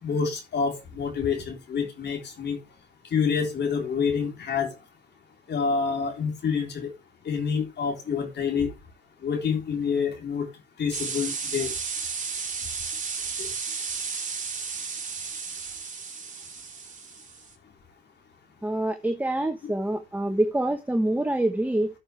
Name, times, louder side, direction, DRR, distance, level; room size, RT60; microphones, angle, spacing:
voice 1, 0.0-2.6 3.1-4.7 5.5-6.9 7.2-8.7 9.2-10.5 10.8-11.7 13.4-13.5, left 6 dB, 60° left, 3.9 m, -27 dB
sound 1, 10.9-17.5, right 5 dB, 40° right, 2.6 m, -33 dB
voice 2, 18.6-21.9, right 1 dB, 10° right, 1.1 m, -26 dB
13.5 x 6.7 x 3.4 m
cardioid pair, 90°, 20 cm